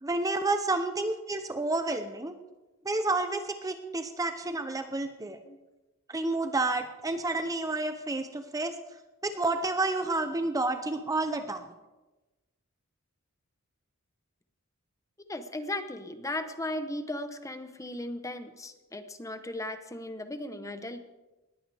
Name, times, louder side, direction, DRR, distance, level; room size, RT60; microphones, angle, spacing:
voice 1, 0.0-2.3 2.8-5.4 6.1-8.8 9.2-11.6, right 2 dB, 15° right, 8 dB, 0.7 m, -30 dB
voice 2, 15.3-21.0, left 1 dB, 15° left, 9 dB, 0.9 m, -36 dB
20.0 x 15.0 x 3.5 m, 1.1 s
head